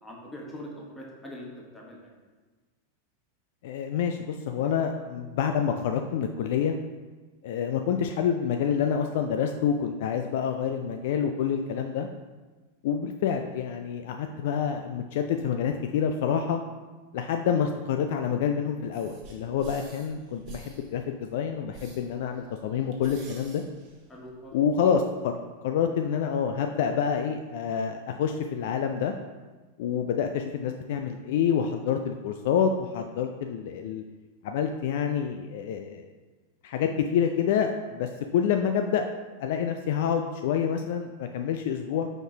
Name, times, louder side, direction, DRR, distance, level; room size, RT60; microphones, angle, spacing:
voice 1, 0.0-2.1 24.1-24.6, equal, 10° left, -2 dB, 1.3 m, -42 dB
voice 2, 3.6-6.7 7.4-12.1 12.8-16.6 17.1-23.6 24.5-29.1 29.8-34.0 34.4-36.1 36.6-39.0 39.4-42.1, left 7 dB, 50° left, 5 dB, 0.3 m, -27 dB
sound 1, 18.9-24.5, right 5 dB, 40° right, 1.2 m, -49 dB
4.8 x 4.3 x 4.5 m, 1.3 s
figure-of-eight pair, 90°, 0 cm